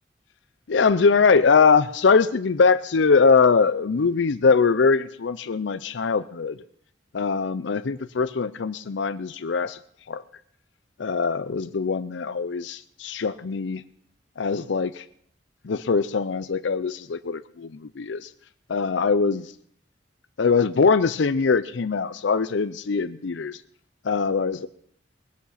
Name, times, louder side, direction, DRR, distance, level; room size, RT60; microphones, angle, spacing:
voice 1, 0.7-6.6 7.1-9.8 10.1-10.2 11.0-13.8 14.4-15.0 15.6-18.3 18.7-19.5 20.4-23.6 24.0-24.7, left 5 dB, 75° left, 13 dB, 0.5 m, -22 dB
20.0 x 8.4 x 5.7 m, 0.66 s
head